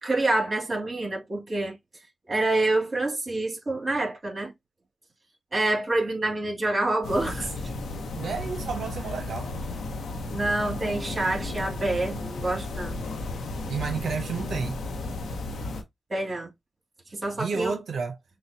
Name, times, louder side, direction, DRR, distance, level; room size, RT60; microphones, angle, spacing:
voice 1, 0.0-1.7 2.3-4.5 5.5-7.5 10.3-12.9 16.1-16.5 17.1-17.7, right 2 dB, 40° right, 2.4 m, -27 dB
sound 1, 7.0-15.8, left 2 dB, 80° left, 0.9 m, -34 dB
voice 2, 8.2-9.5 13.7-14.8 17.4-18.2, right 5 dB, 75° right, 0.7 m, -31 dB
6.1 x 2.2 x 2.7 m
cardioid pair, 55°, 0 cm